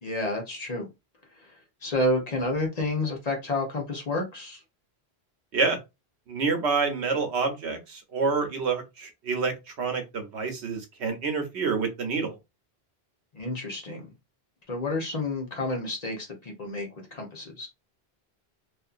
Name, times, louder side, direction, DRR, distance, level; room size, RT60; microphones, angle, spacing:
voice 1, 0.0-0.9 1.8-4.6 13.3-14.1 14.7-17.7, left 2 dB, 45° left, 0.7 m, -30 dB
voice 2, 6.3-12.4, right 4 dB, 90° right, 1.0 m, -28 dB
2.5 x 2.5 x 2.4 m
omnidirectional pair, 1.1 m